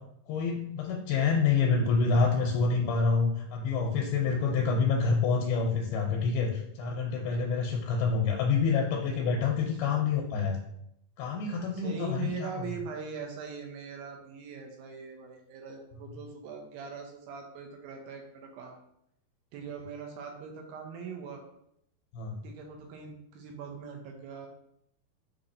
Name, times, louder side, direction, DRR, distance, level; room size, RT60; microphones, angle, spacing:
voice 1, 0.3-10.6 11.2-12.5 22.1-22.4, left 5 dB, 85° left, 0 dB, 2.4 m, -27 dB
voice 2, 11.7-18.8 19.5-21.4 22.4-24.5, right 6 dB, 80° right, 2 dB, 2.5 m, -41 dB
6.3 x 2.8 x 2.6 m, 0.74 s
omnidirectional pair, 4.3 m